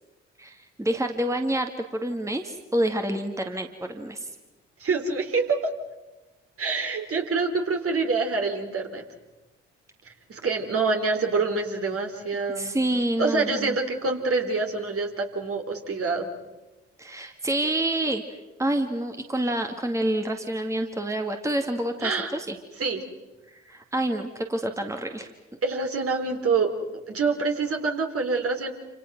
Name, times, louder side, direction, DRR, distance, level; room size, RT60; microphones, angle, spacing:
voice 1, 0.4-4.3 12.6-13.8 17.0-18.2 18.6-22.6 23.5-25.3, right 1 dB, 10° right, 4 dB, 2.3 m, -28 dB
voice 2, 4.8-5.7 6.6-9.0 10.1-12.8 13.2-16.3 22.0-22.3 22.8-23.0 25.6-26.7 27.1-28.7, right 4 dB, 40° right, 4 dB, 3.6 m, -26 dB
28.5 x 27.5 x 6.2 m, 1.1 s
figure-of-eight pair, 40°, 34 cm